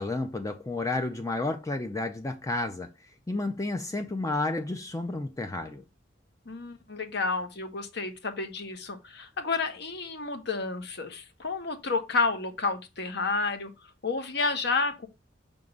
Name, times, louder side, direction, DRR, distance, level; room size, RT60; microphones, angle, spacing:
voice 1, 0.0-2.9 3.3-5.8, left 2 dB, 15° left, 0.5 m, -31 dB
voice 2, 6.5-13.7 14.0-15.1, left 3 dB, 60° left, 1.1 m, -30 dB
5.8 x 3.7 x 5.3 m
head